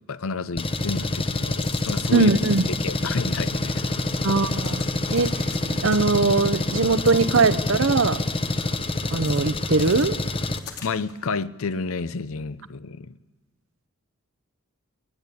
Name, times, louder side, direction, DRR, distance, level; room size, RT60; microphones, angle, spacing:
voice 1, 0.1-2.3 2.8-3.7 10.8-13.2, left 4 dB, 70° left, 0.7 m, -30 dB
Engine, 0.6-10.6, left 2 dB, 25° left, 0.9 m, -26 dB
sound 1, 1.4-2.0 2.3-2.8 3.2-4.3 4.6-5.6 5.9-7.7 8.1-9.4 9.8-11.2, left 7 dB, 85° left, 3.6 m, -45 dB
voice 2, 2.1-2.6 4.2-4.8 5.1-5.5 5.8-8.2 9.1-10.2, right 3 dB, 60° right, 0.7 m, -21 dB
22.5 x 20.5 x 8.4 m
head